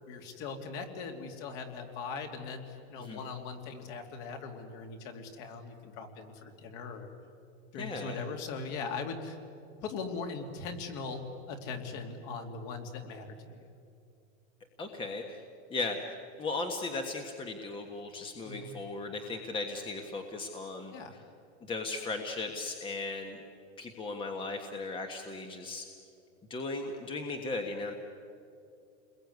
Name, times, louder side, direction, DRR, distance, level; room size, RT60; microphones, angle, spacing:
voice 1, 0.1-7.1 7.7-9.4 9.8-13.7 18.4-18.8 20.9-21.2, left 4 dB, 45° left, 4 dB, 3.1 m, -40 dB
voice 2, 7.8-8.2 14.8-15.4 15.7-16.0 16.4-20.9 21.7-23.4 23.8-25.8 26.5-27.9, left 3 dB, 15° left, 4 dB, 1.4 m, -37 dB
29.0 x 21.5 x 9.6 m, 2.5 s
supercardioid pair, 155°, 35 cm